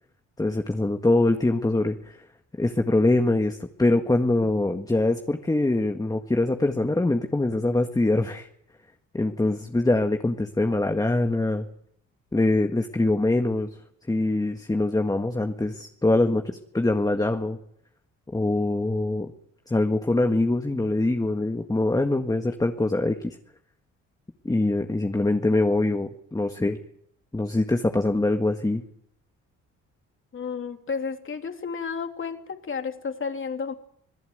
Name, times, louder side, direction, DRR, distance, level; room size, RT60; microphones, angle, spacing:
voice 1, 0.4-2.2 2.6-8.5 9.1-11.7 12.3-13.7 14.1-17.6 18.3-19.3 19.7-23.4 24.4-26.8 27.3-28.8, left 2 dB, 10° left, 5 dB, 1.7 m, -23 dB
voice 2, 30.3-33.7, left 5 dB, 40° left, 6 dB, 3.0 m, -32 dB
26.5 x 17.5 x 8.1 m, 0.71 s
cardioid pair, 90°, 30 cm